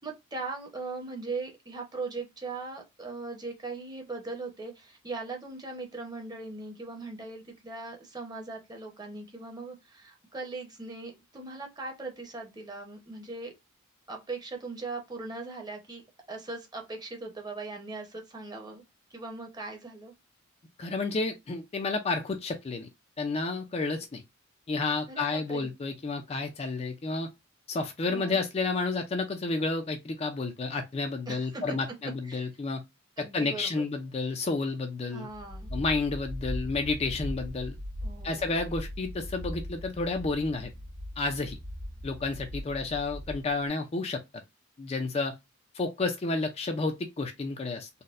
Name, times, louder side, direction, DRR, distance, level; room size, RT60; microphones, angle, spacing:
voice 1, 0.0-13.5 14.1-16.0 16.3-18.8 19.1-20.1 25.1-25.7 28.1-28.4 31.3-31.8 32.2-32.5 33.2-33.8 35.1-35.7 38.0-38.6, right 3 dB, 20° right, 0.8 m, -39 dB
voice 2, 20.8-22.9 23.2-24.2 24.7-27.3 27.7-32.8 33.3-35.3 35.7-37.8 38.2-40.7 41.2-41.6 42.0-44.2 44.8-45.3 45.7-47.9, left 3 dB, 30° left, 0.4 m, -31 dB
sound 1, 35.3-43.7, equal, 70° right, 1.6 m, -39 dB
4.0 x 2.1 x 2.4 m
head